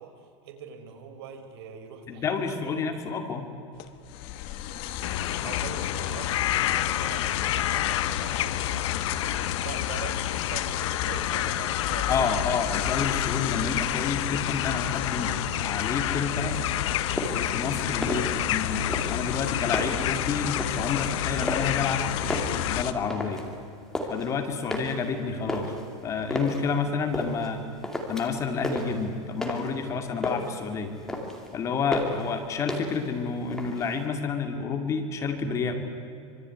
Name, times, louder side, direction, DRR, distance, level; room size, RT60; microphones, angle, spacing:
voice 1, 0.0-2.8 5.4-12.6 12.8-13.0, right 7 dB, 55° right, 6 dB, 4.4 m, -43 dB
voice 2, 2.1-3.4 12.1-16.6 17.3-23.4 24.1-25.7 26.0-27.6 28.1-30.9 31.5-35.8, left 5 dB, 20° left, 5 dB, 2.3 m, -29 dB
sound 1, 3.8-22.9, left 11 dB, 35° left, 1.3 m, -33 dB
sound 2, 5.0-22.8, left 12 dB, 80° left, 0.9 m, -30 dB
sound 3, 17.1-17.5 17.9-18.6 18.9-20.1 20.6-20.9 21.4-21.9 22.2-23.5 23.7-24.3 24.7-26.6 27.1-27.5 27.8-28.4 28.6-29.8 30.1-30.6 30.9-31.5 31.9-32.3 32.7-33.1 33.4-34.1, left 1 dB, 5° left, 2.4 m, -33 dB
26.0 x 23.0 x 9.5 m, 2.5 s
supercardioid pair, 170°, 16 cm